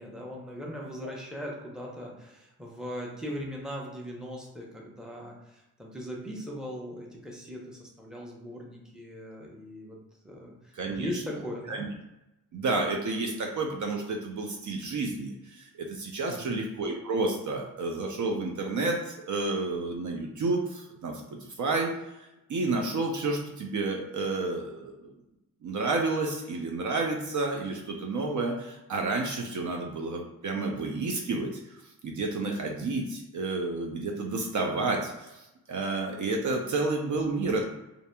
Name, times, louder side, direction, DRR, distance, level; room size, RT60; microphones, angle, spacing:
voice 1, 0.0-10.0 10.2-10.5 10.9-11.9 16.3-16.6, equal, ahead, -2 dB, 0.8 m, -39 dB
voice 2, 10.7-11.2 11.7-11.9 12.5-21.9 22.2-25.1 25.6-37.6, right 3 dB, 50° right, 1 dB, 0.5 m, -30 dB
2.6 x 2.6 x 2.2 m, 0.94 s
cardioid pair, 60°, 38 cm